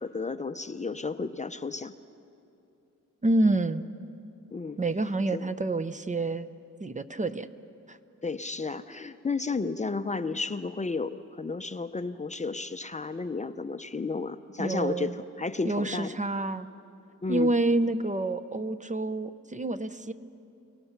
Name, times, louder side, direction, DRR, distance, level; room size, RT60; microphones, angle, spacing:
voice 1, 0.0-1.9 4.5-4.8 5.3-5.5 8.2-16.2 17.2-17.5, left 4 dB, 25° left, 10 dB, 0.6 m, -32 dB
voice 2, 3.2-3.9 4.8-6.5 6.8-7.5 7.9-8.0 14.6-15.1 15.6-16.7 17.3-20.1, right 2 dB, 25° right, 11 dB, 0.6 m, -28 dB
29.5 x 18.0 x 5.9 m, 2.6 s
cardioid pair, 105°, 32 cm